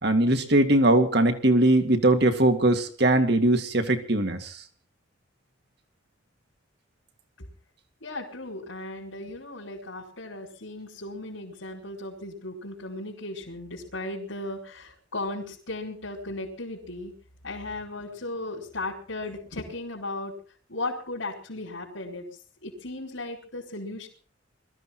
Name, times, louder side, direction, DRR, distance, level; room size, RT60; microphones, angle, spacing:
voice 1, 0.0-4.5, right 1 dB, 55° right, 7 dB, 2.2 m, -21 dB
voice 2, 8.0-17.1 17.4-20.3 20.7-22.3 22.6-24.1, left 2 dB, 75° left, -4 dB, 4.6 m, -36 dB
22.0 x 14.5 x 4.5 m, 0.41 s
head